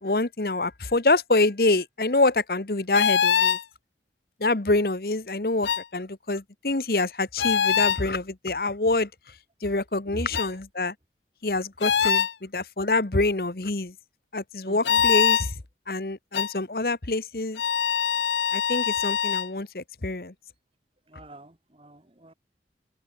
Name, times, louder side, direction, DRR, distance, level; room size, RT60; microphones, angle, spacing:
voice 1, 0.0-3.6 4.4-9.1 9.6-10.9 11.4-13.9 14.3-15.5 15.9-17.6 18.5-20.3, left 2 dB, 55° left, 1.2 m, -26 dB
sound 1, 2.9-3.6 5.6-5.8 7.4-8.0 10.3-10.5 11.8-12.3 14.8-15.5 16.3-16.5 17.6-19.5, left 8 dB, 90° left, 0.6 m, -23 dB
voice 2, 10.1-10.4 14.6-15.0 21.1-22.3, right 1 dB, 30° right, 1.7 m, -41 dB
head